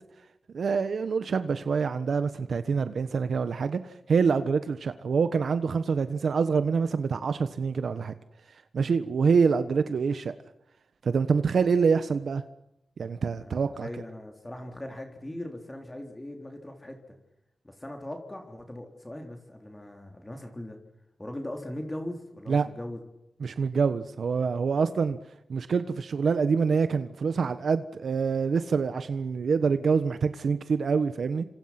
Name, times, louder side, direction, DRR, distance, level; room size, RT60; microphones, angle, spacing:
voice 1, 0.5-8.1 8.7-10.3 11.0-12.4 13.0-13.9 22.5-22.7 23.4-25.2 25.5-31.4, right 5 dB, 65° right, 1.3 m, -26 dB
voice 2, 13.4-17.2 17.6-20.8 21.2-23.0, left 1 dB, 15° left, 3.7 m, -39 dB
29.0 x 26.0 x 6.0 m
wide cardioid pair, 120°, 0 cm